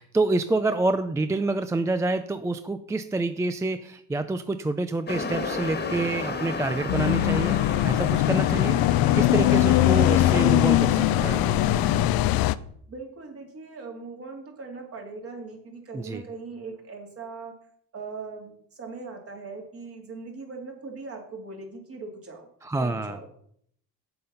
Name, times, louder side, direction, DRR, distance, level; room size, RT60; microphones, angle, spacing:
voice 1, 0.0-11.6 15.9-16.2 22.6-23.2, right 2 dB, 10° right, 10 dB, 0.3 m, -27 dB
sound 1, 5.1-12.0, left 3 dB, 30° left, 1.5 m, -33 dB
sound 2, 6.9-12.5, left 14 dB, 80° left, 0.5 m, -21 dB
voice 2, 12.9-17.5 17.9-22.5 22.8-23.3, right 4 dB, 40° right, 2 dB, 2.6 m, -40 dB
7.7 x 7.7 x 5.6 m, 0.66 s
cardioid pair, 130°, 35 cm